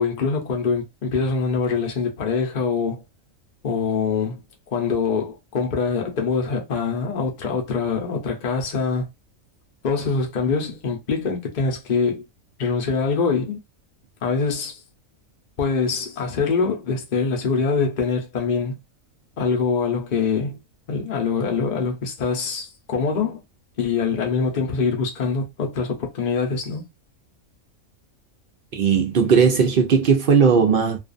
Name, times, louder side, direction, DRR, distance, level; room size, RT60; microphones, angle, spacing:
voice 1, 0.0-3.0 3.6-4.4 4.7-9.1 9.8-12.2 12.6-13.6 14.2-14.8 15.6-18.8 19.4-20.6 20.9-23.4 23.8-26.8, left 5 dB, 45° left, 0.7 m, -24 dB
voice 2, 28.7-31.0, right 6 dB, 65° right, 0.5 m, -17 dB
2.5 x 2.4 x 2.4 m
omnidirectional pair, 1.4 m